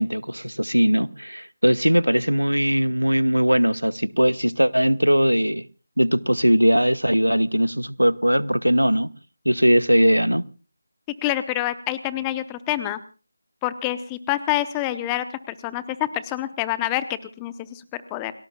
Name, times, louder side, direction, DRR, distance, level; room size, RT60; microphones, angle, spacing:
voice 1, 0.0-5.6 6.0-9.1 9.4-10.5, equal, 90° right, 0.9 m, -20 dB
voice 2, 11.2-13.0 13.6-18.3, left 14 dB, 10° left, 0.8 m, -27 dB
29.0 x 19.0 x 2.3 m
figure-of-eight pair, 160°, 0 cm